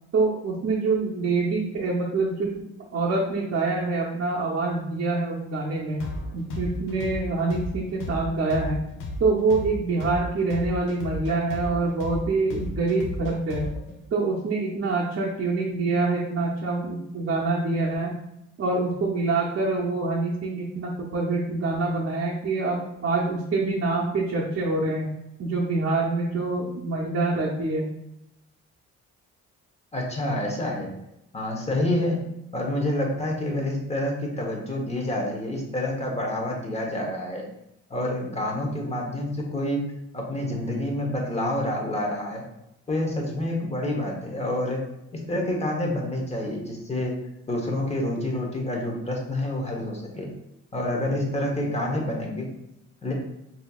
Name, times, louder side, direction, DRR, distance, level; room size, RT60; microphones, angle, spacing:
voice 1, 0.1-2.6 2.9-6.0 6.3-8.8 9.2-13.7 14.1-18.1 18.6-25.1 25.4-27.9, right 3 dB, 50° right, -4 dB, 0.7 m, -25 dB
sound 1, 6.0-13.9, left 1 dB, 80° left, 0.7 m, -34 dB
voice 2, 29.9-30.9 31.3-32.2 32.5-37.4 37.9-39.8 40.1-42.4 42.9-44.8 45.1-47.1 47.5-50.3 50.7-52.5 53.0-53.1, left 1 dB, 20° left, -1 dB, 1.0 m, -28 dB
4.0 x 2.8 x 2.3 m, 0.85 s
cardioid pair, 90°, 30 cm